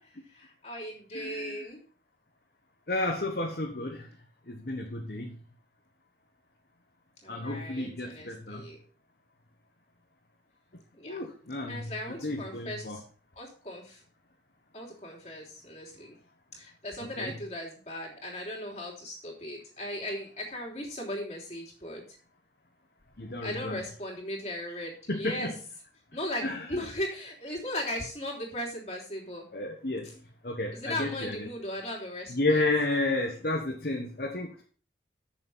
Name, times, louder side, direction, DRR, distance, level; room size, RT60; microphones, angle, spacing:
voice 1, 0.3-1.8 7.2-8.8 10.9-11.2 11.7-13.0 13.3-14.0 14.7-16.1 16.5-22.0 23.4-25.5 26.1-29.5 30.7-32.6, left 1 dB, 40° left, -2 dB, 3.4 m, -37 dB
voice 2, 1.1-1.6 2.9-4.1 4.5-5.4 7.3-8.6 11.0-13.0 17.2-17.3 23.2-23.8 25.1-25.5 26.4-26.8 29.5-31.5 32.3-34.7, left 2 dB, 60° left, 1 dB, 1.3 m, -32 dB
8.3 x 6.9 x 5.6 m, 0.40 s
head